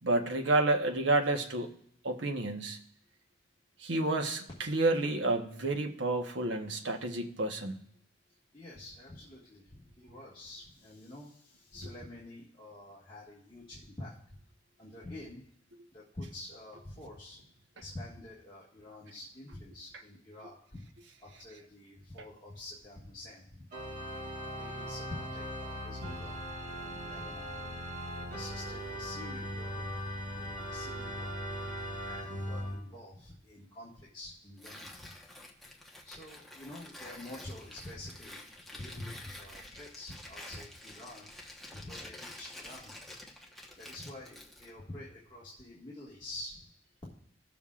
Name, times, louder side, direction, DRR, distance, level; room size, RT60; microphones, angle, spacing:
voice 1, 0.0-1.7 2.0-2.8 3.8-7.8, right 2 dB, 75° right, 4 dB, 1.1 m, -30 dB
voice 2, 8.5-14.4 14.8-15.4 15.9-17.4 17.8-20.8 21.2-23.6 24.5-26.4 26.8-27.6 28.3-30.1 30.3-31.3 32.1-35.1 36.1-38.4 38.7-41.3 41.7-42.9 43.8-46.7, left 1 dB, 25° left, -6 dB, 1.8 m, -47 dB
Organ, 23.7-32.8, equal, 45° right, 2.5 m, -39 dB
Tearing, 34.6-44.8, left 1 dB, ahead, 1.1 m, -49 dB
17.0 x 7.1 x 2.4 m, 0.69 s
head